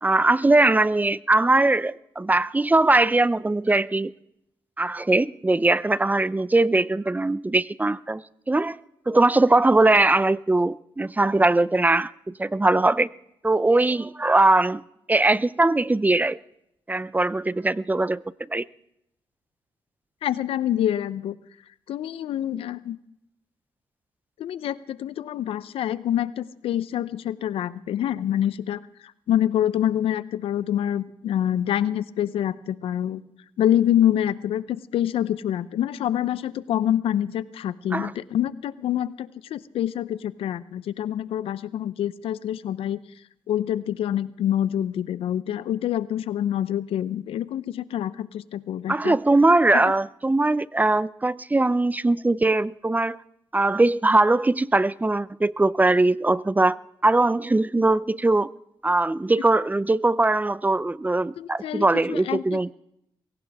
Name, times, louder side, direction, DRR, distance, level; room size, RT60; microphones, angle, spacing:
voice 1, 0.0-4.1 4.8-8.8 9.1-13.1 13.4-14.8 15.1-16.4 16.9-18.2 18.5-18.7 37.9-38.1 48.9-53.2 53.5-56.8 57.0-58.5 58.8-62.7, right 2 dB, 15° right, 0.5 m, -21 dB
voice 2, 20.2-21.4 21.9-23.0 24.4-28.8 29.3-33.2 33.6-43.0 43.5-49.2 49.7-49.8 61.4-62.7, left 11 dB, 80° left, 0.7 m, -26 dB
21.0 x 17.5 x 3.5 m
cardioid pair, 65°, 9 cm